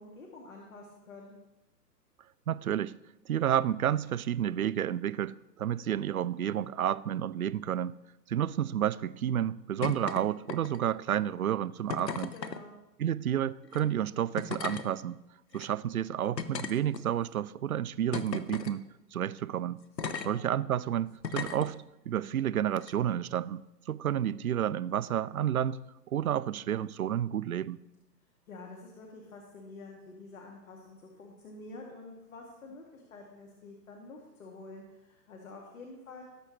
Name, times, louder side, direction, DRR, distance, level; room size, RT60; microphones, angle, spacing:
voice 1, 0.0-1.4 12.3-12.8 20.0-20.4 28.5-36.2, left 3 dB, 50° left, 2.0 m, -48 dB
voice 2, 2.5-2.9 3.3-7.9 8.3-12.3 13.0-15.2 15.5-18.8 19.1-19.8 20.3-23.6 23.9-25.8 26.1-27.8, right 10 dB, 60° right, 0.5 m, -30 dB
sound 1, 9.8-10.2 10.5-10.9 11.9-12.6 13.6-13.8 14.4-14.9 15.5-15.7 16.4-17.3 18.1-18.8 20.0-20.3 21.2-21.7 22.8-22.9, left 6 dB, 75° left, 1.0 m, -36 dB
18.5 x 6.9 x 3.1 m
figure-of-eight pair, 125°, 50 cm